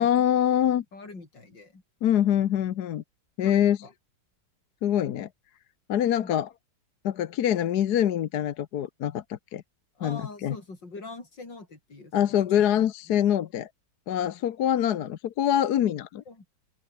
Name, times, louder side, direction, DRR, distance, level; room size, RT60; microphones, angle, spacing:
voice 1, 0.0-0.8 2.0-3.0 3.4-3.8 4.8-5.3 5.9-6.5 7.0-9.6 10.0-10.5 12.1-13.7 14.1-16.2, left 10 dB, 70° left, 1.4 m, -24 dB
voice 2, 0.9-1.8 3.4-3.9 6.2-6.3 10.0-12.6 16.3-16.5, left 3 dB, 85° left, 5.7 m, -43 dB
open air
omnidirectional pair, 1.9 m